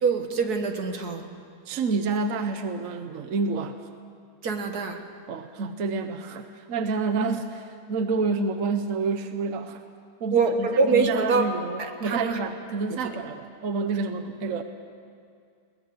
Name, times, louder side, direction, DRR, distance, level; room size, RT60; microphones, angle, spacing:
voice 1, 0.0-1.3 4.4-5.0 10.3-11.4 11.8-12.4, right 4 dB, 80° right, 5 dB, 2.0 m, -24 dB
voice 2, 1.7-3.8 5.3-9.8 10.2-14.6, right 4 dB, 60° right, 8 dB, 1.3 m, -28 dB
21.5 x 18.0 x 7.8 m, 2.3 s
omnidirectional pair, 1.6 m